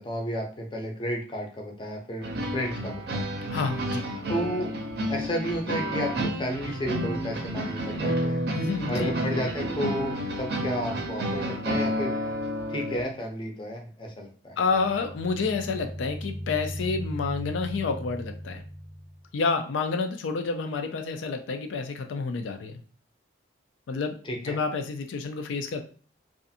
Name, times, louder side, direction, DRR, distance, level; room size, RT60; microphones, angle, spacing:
voice 1, 0.0-3.3 4.3-4.7 5.1-8.4 8.9-12.1 12.7-14.5 24.2-24.6, equal, 25° left, 1 dB, 0.5 m, -32 dB
sound 1, 2.2-13.0, equal, 60° right, 0.5 m, -30 dB
voice 2, 3.5-4.1 8.6-9.1 14.6-18.6 19.3-22.8 23.9-25.8, left 4 dB, 90° left, 6 dB, 0.4 m, -29 dB
sound 2, 14.5-19.2, equal, 15° right, 0.8 m, -38 dB
2.5 x 2.4 x 2.6 m, 0.40 s
head